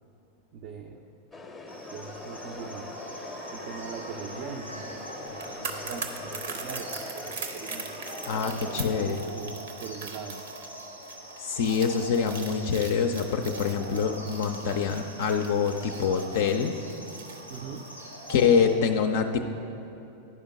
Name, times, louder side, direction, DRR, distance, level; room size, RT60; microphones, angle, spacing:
voice 1, 0.5-1.1 1.7-2.9 3.5-8.0 8.9-10.4 17.5-17.9 18.1-18.3, right 5 dB, 45° right, 2 dB, 0.5 m, -41 dB
sound 1, 1.3-9.0, left 3 dB, 10° left, 0.7 m, -42 dB
sound 2, 1.7-18.7, right 1 dB, 85° right, 1.8 m, -43 dB
sound 3, 5.3-18.4 18.7-18.9, right 5 dB, 60° right, 0.8 m, -41 dB
voice 2, 8.3-9.2 11.4-16.7 18.3-19.4, left 6 dB, 55° left, 5 dB, 0.4 m, -25 dB
11.0 x 5.1 x 5.5 m, 2.9 s
figure-of-eight pair, 90°, 0 cm